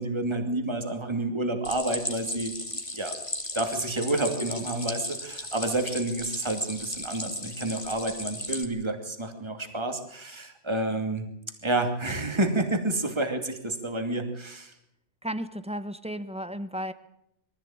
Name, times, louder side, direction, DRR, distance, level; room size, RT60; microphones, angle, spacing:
voice 1, 0.0-2.5 3.0-3.1 3.5-11.2 11.6-14.7, right 2 dB, 25° right, 5 dB, 2.6 m, -29 dB
Stream, 1.6-8.6, left 1 dB, 25° left, 2.3 m, -36 dB
voice 2, 15.2-16.9, equal, 5° right, 12 dB, 1.2 m, -34 dB
23.0 x 15.5 x 8.9 m, 0.80 s
omnidirectional pair, 1.2 m